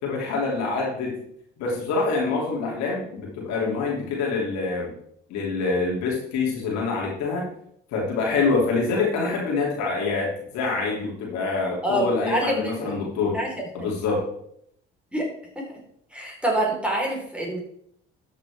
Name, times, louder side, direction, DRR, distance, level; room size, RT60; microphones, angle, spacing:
voice 1, 0.0-1.2 1.6-4.9 5.3-7.5 7.9-13.4 13.7-14.2, left 4 dB, 70° left, -2 dB, 3.1 m, -26 dB
voice 2, 11.8-12.9 13.3-13.7 15.1-15.3 15.5-15.6 16.1-17.6, right 1 dB, 5° right, -3 dB, 4.4 m, -26 dB
12.5 x 7.3 x 3.6 m, 0.70 s
hypercardioid pair, 55°, 29 cm